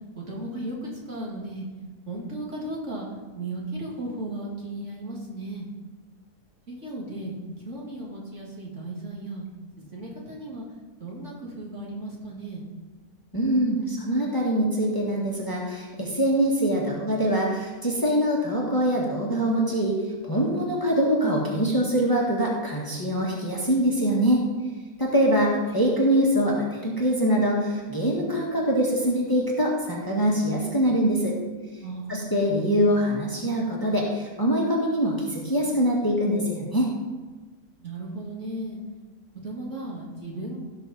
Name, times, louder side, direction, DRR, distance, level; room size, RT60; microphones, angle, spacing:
voice 1, 0.2-1.7 2.1-3.1 3.3-5.7 6.7-9.5 9.8-10.7 11.0-12.6 25.2-25.3 31.8-32.4 37.8-38.8 39.4-40.6, right 1 dB, 50° right, -4 dB, 2.4 m, -35 dB
voice 2, 13.3-20.0 20.2-24.4 25.0-31.4 32.1-36.9, equal, 15° left, -3 dB, 1.7 m, -23 dB
16.5 x 6.2 x 4.2 m, 1.3 s
omnidirectional pair, 1.6 m